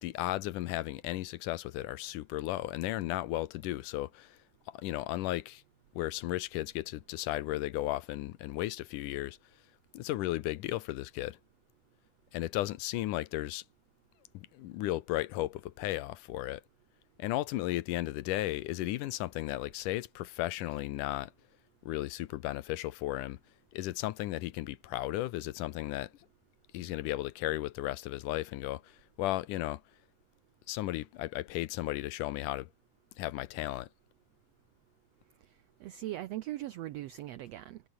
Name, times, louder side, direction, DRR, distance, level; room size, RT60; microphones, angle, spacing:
voice 1, 0.0-4.4 4.7-5.6 6.0-9.4 9.9-11.4 12.3-13.6 14.3-16.6 17.2-21.3 21.9-23.4 23.7-26.1 26.7-29.8 30.7-32.7 33.2-33.9, left 16 dB, 80° left, 2.4 m, -35 dB
voice 2, 35.8-37.8, right 14 dB, 75° right, 1.5 m, -39 dB
omnidirectional pair, 3.7 m